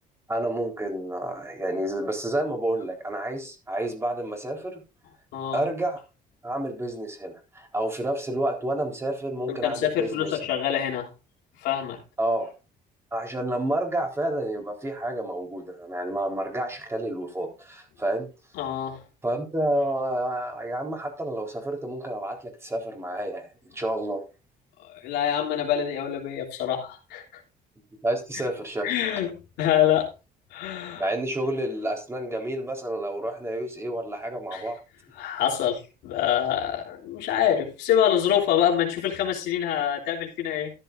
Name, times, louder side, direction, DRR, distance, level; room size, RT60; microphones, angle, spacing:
voice 1, 0.3-4.8 5.5-6.0 6.4-10.3 12.2-12.5 13.1-18.3 19.2-24.2 28.0-28.9 30.9-34.8, right 1 dB, 15° right, 4.0 m, -29 dB
voice 2, 5.3-5.6 9.5-11.1 11.6-12.0 18.5-19.0 24.9-27.4 28.3-28.4 28.8-30.1 30.5-31.1 34.5-34.6 35.2-40.7, left 10 dB, 90° left, 3.2 m, -26 dB
13.5 x 11.0 x 2.6 m
cardioid pair, 110°, 17 cm